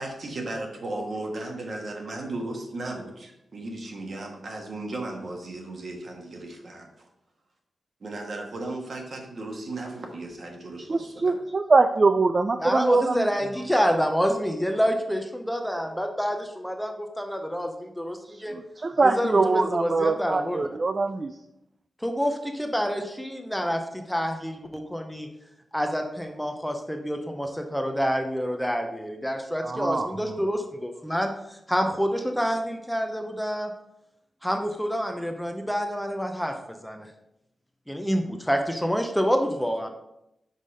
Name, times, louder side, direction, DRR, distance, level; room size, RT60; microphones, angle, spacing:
voice 1, 0.0-7.1 8.0-11.4, right 2 dB, 50° right, 2 dB, 1.4 m, -35 dB
voice 2, 10.9-13.3 18.3-21.3 29.6-30.1, right 3 dB, 35° right, 8 dB, 0.3 m, -23 dB
voice 3, 12.6-18.6 19.0-20.7 22.0-25.3 25.7-33.7 34.4-37.1 37.9-39.9, equal, ahead, 4 dB, 0.6 m, -27 dB
5.4 x 5.0 x 5.3 m, 0.84 s
wide cardioid pair, 140°, 0 cm